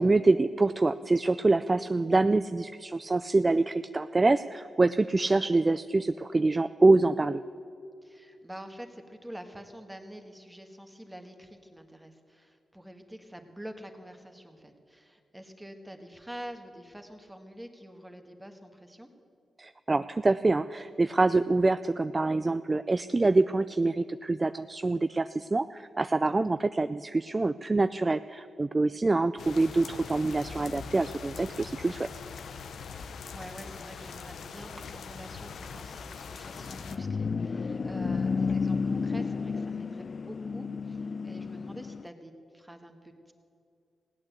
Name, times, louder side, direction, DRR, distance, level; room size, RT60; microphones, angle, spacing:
voice 1, 0.0-7.4 19.6-32.1, right 3 dB, 30° right, 12 dB, 0.3 m, -25 dB
voice 2, 8.0-19.1 33.3-43.3, equal, 10° right, 5 dB, 1.7 m, -46 dB
sound 1, 29.4-37.0, left 5 dB, 75° left, 0.8 m, -42 dB
sound 2, 36.5-42.1, left 5 dB, 50° left, 0.3 m, -32 dB
16.5 x 8.8 x 8.2 m, 2.5 s
cardioid pair, 60°, 0 cm